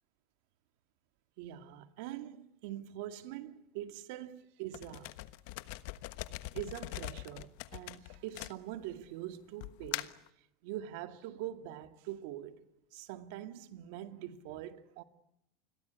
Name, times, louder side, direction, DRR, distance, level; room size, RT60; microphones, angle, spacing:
voice 1, 1.4-5.1 6.5-10.1 10.6-12.6 12.9-15.0, right 12 dB, 70° right, 2.1 m, -43 dB
sound 1, 4.7-9.0 9.6-10.3, left 18 dB, 70° left, 1.2 m, -42 dB
29.0 x 22.0 x 8.2 m
supercardioid pair, 130°, 0 cm